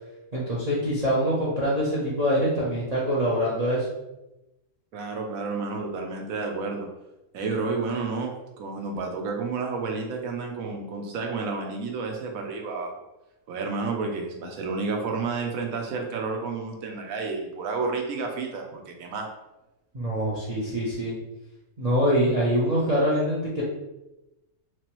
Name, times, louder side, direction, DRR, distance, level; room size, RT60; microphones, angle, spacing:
voice 1, 0.3-3.9 19.9-21.1 21.8-23.6, equal, 40° right, -6 dB, 0.5 m, -24 dB
voice 2, 4.9-6.9 7.3-12.9 13.5-19.3, right 4 dB, 70° right, 2 dB, 1.0 m, -30 dB
3.3 x 3.1 x 3.0 m, 0.97 s
omnidirectional pair, 1.6 m